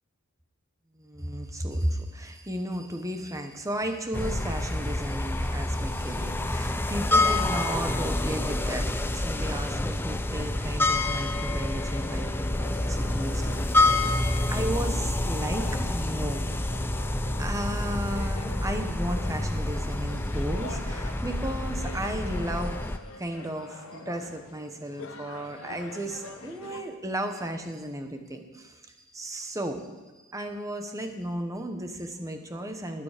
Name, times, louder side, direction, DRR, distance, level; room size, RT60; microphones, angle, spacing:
voice 1, 1.0-13.6 14.5-16.4 17.4-28.8 29.1-30.0 30.3-33.0, right 1 dB, 15° right, 5 dB, 1.1 m, -34 dB
sound 1, 4.1-23.0, left 2 dB, 10° left, 0.5 m, -28 dB
sound 2, 12.7-26.8, left 3 dB, 70° left, 1.2 m, -45 dB
20.0 x 7.0 x 5.1 m, 1.2 s
head